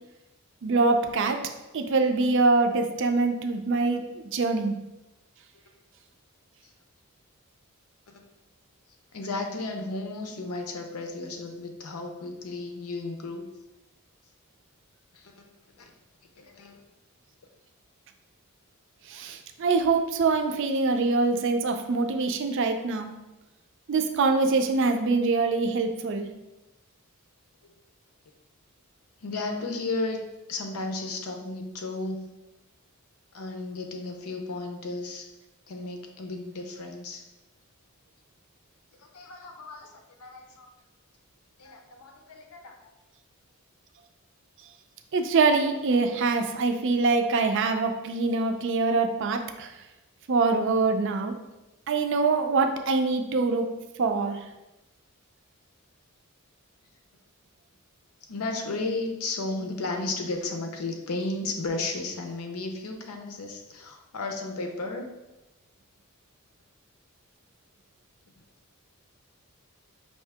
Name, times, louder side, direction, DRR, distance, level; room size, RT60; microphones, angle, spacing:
voice 1, 0.6-1.5 1.7-4.7 19.1-23.1 23.9-26.3 45.1-49.7 50.3-51.3 51.9-53.7 54.0-54.4, right 3 dB, 60° right, 6 dB, 0.4 m, -24 dB
voice 2, 9.1-13.5 15.1-15.3 15.8-15.9 16.4-16.8 29.2-30.2 30.5-32.3 33.3-35.3 35.7-37.2 39.1-40.7 41.6-42.8 58.3-65.1, left 3 dB, 85° left, 4 dB, 0.7 m, -34 dB
5.5 x 2.7 x 3.4 m, 1.0 s
head